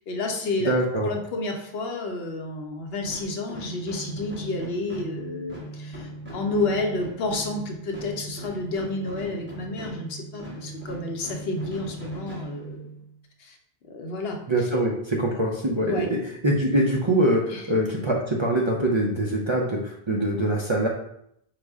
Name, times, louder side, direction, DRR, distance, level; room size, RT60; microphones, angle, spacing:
voice 1, 0.0-0.7 1.0-12.8 13.4-13.6 13.9-14.4 15.8-16.1 17.5-17.6, left 2 dB, 75° left, 3 dB, 0.9 m, -30 dB
voice 2, 0.6-1.1 14.5-16.2 16.4-19.8 20.1-20.9, right 1 dB, 40° right, -2 dB, 0.5 m, -23 dB
sound 1, 3.0-13.2, right 1 dB, 10° right, 1.0 m, -39 dB
4.9 x 2.1 x 3.5 m, 0.73 s
omnidirectional pair, 1.0 m